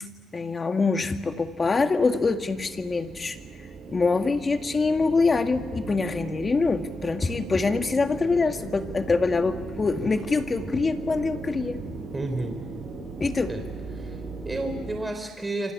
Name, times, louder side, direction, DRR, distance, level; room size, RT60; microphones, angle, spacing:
voice 1, 0.3-3.4 3.9-11.8 13.2-13.5, left 4 dB, 30° left, 6 dB, 2.0 m, -24 dB
sound 1, 1.2-15.0, right 4 dB, 55° right, 6.0 m, -38 dB
voice 2, 12.1-12.6 13.5-13.6 13.9-15.7, right 2 dB, 15° right, 5 dB, 4.0 m, -31 dB
28.0 x 24.5 x 8.5 m, 1.4 s
cardioid pair, 100°, 0 cm